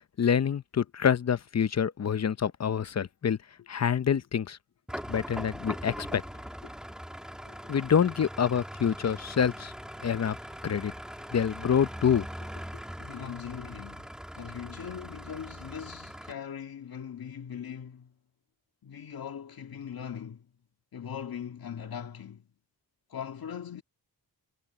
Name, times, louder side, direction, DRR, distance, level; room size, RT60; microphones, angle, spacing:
voice 1, 0.2-3.4 3.7-4.6 5.1-6.2 7.7-9.7 10.0-10.4 10.6-10.9 11.3-12.3, left 7 dB, 45° left, 0.7 m, -26 dB
sound 1, 4.9-16.3, equal, ahead, 1.4 m, -41 dB
voice 2, 13.0-18.1 18.8-20.5 20.9-22.5 23.1-23.8, left 8 dB, 80° left, 2.1 m, -40 dB
wide cardioid pair, 140°, 36 cm